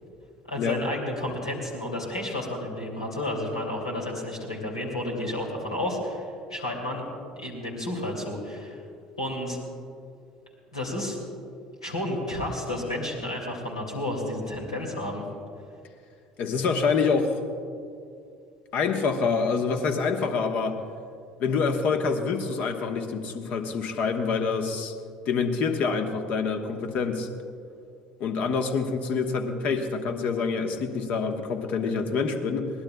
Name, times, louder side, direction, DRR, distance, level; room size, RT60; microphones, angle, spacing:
voice 1, 0.5-7.0 7.4-8.8 9.2-9.6 10.7-11.2 11.8-15.2, left 1 dB, 85° left, -2 dB, 2.6 m, -31 dB
voice 2, 16.4-17.5 18.7-20.8 21.4-24.9 25.3-27.3 28.2-32.7, left 5 dB, 50° left, 6 dB, 1.2 m, -26 dB
22.0 x 18.5 x 2.3 m, 2.4 s
figure-of-eight pair, 60°, 3 cm